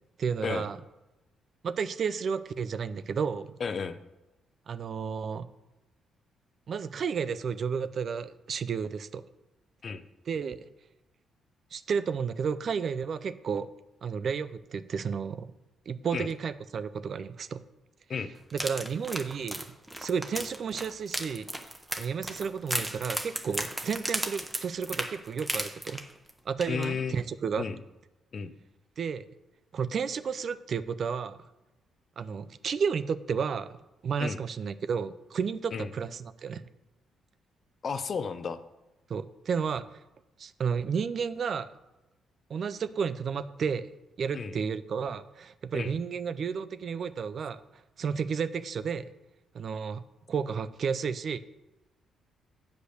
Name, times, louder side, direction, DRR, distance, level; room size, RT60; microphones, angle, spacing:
voice 1, 0.2-0.8 1.6-3.6 4.7-5.5 6.7-9.2 10.3-10.7 11.7-13.7 14.0-15.5 15.9-17.6 18.5-19.6 20.0-21.5 22.0-26.0 26.5-27.7 29.0-29.2 29.7-31.4 32.2-36.6 39.1-39.8 40.4-41.7 42.5-43.9 44.2-47.6 48.0-49.0 49.5-50.0 50.3-51.4, right 6 dB, 55° right, 14 dB, 0.5 m, -32 dB
voice 2, 3.6-4.0 9.8-10.0 16.1-16.3 18.1-18.3 26.7-27.2 27.5-27.8 28.3-28.5 34.2-34.4 35.7-35.9 37.8-38.6 44.3-44.5 45.7-45.9, left 5 dB, 45° left, 12 dB, 0.6 m, -32 dB
sound 1, 18.5-26.3 26.6-26.9 27.2-27.3, right 1 dB, 10° right, 1.1 m, -35 dB
8.2 x 5.2 x 6.5 m, 1.0 s
cardioid pair, 90°, 0 cm